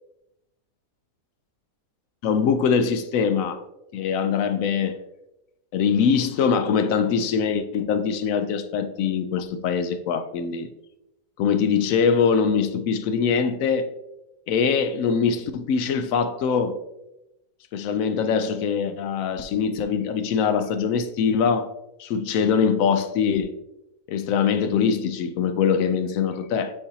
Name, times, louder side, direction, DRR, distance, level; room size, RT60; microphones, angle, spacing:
voice 1, 2.2-3.6 3.9-5.0 5.7-10.7 11.4-13.9 14.5-16.8 17.7-21.7 22.0-23.5 24.1-26.7, left 6 dB, 70° left, 0.8 m, -23 dB
8.9 x 4.2 x 2.7 m
omnidirectional pair, 1.8 m